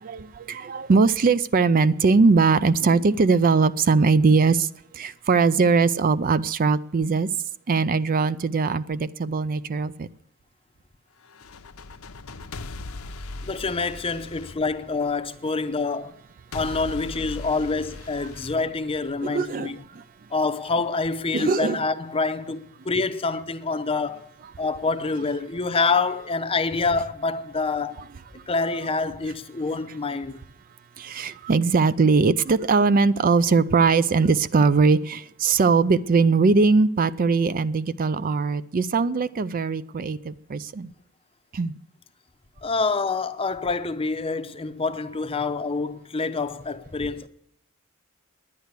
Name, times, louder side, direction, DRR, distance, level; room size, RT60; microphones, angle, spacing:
voice 1, 0.0-4.7 4.9-7.3 7.7-10.1 19.2-20.0 21.3-21.8 31.0-40.9 41.5-41.8, right 4 dB, 40° right, 0.4 m, -21 dB
sound 1, 11.2-15.4 16.5-19.4, left 3 dB, 70° left, 0.8 m, -39 dB
voice 2, 13.4-16.1 16.5-19.8 20.3-24.3 24.6-28.1 28.5-30.4 42.6-47.3, left 4 dB, 25° left, 0.6 m, -26 dB
10.5 x 9.7 x 8.2 m
head